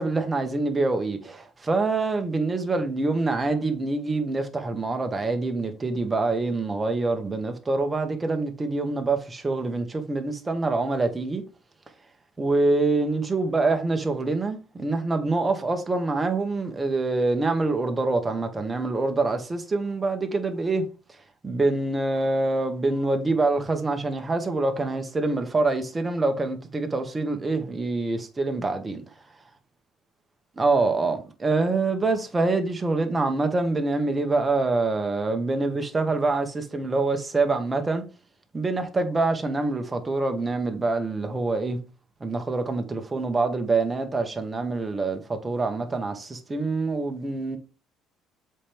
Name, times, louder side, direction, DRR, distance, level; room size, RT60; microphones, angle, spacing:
voice 1, 0.0-11.4 12.4-20.8 21.4-29.0 30.6-38.0 38.5-41.8 42.2-47.6, right 3 dB, 20° right, 1.3 m, -25 dB
7.3 x 4.4 x 3.5 m
cardioid pair, 130°, 0 cm